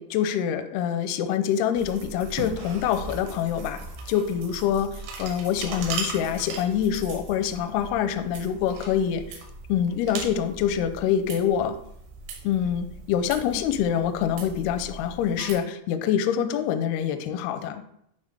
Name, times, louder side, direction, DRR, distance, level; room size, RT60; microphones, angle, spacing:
voice 1, 0.0-3.8 4.1-4.9 5.2-9.2 9.7-11.8 12.4-17.9, left 9 dB, 85° left, 8 dB, 2.3 m, -25 dB
sound 1, 1.7-15.6, right 4 dB, 75° right, 3.3 m, -39 dB
8.9 x 3.7 x 5.1 m, 0.76 s
omnidirectional pair, 5.0 m